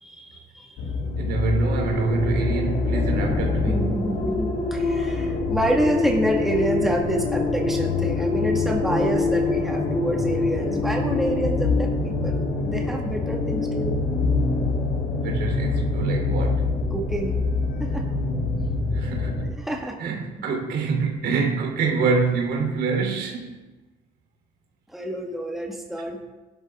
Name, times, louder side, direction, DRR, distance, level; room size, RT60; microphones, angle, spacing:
voice 1, 0.0-0.7 3.6-14.0 16.9-17.4 17.8-18.0 19.6-20.0 24.9-26.2, right 1 dB, ahead, 0 dB, 1.7 m, -27 dB
sound 1, 0.8-19.5, left 3 dB, 80° left, 1.6 m, -25 dB
voice 2, 1.2-3.8 15.1-16.6 18.9-19.5 20.0-23.5, right 4 dB, 75° right, 1 dB, 3.3 m, -25 dB
16.0 x 11.5 x 3.6 m, 1.2 s
cardioid pair, 110°, 17 cm